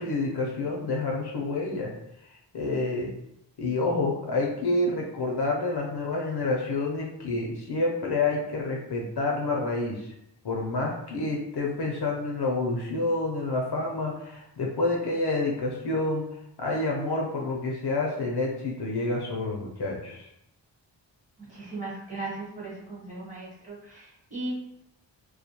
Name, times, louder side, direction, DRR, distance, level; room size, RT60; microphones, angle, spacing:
voice 1, 0.0-1.9 2.5-3.1 3.6-10.1 10.4-16.2 16.6-20.3, left 2 dB, 60° left, -1 dB, 0.6 m, -28 dB
voice 2, 21.4-24.5, right 2 dB, 15° right, -7 dB, 1.1 m, -37 dB
2.2 x 2.2 x 2.8 m, 0.79 s
wide cardioid pair, 90°, 46 cm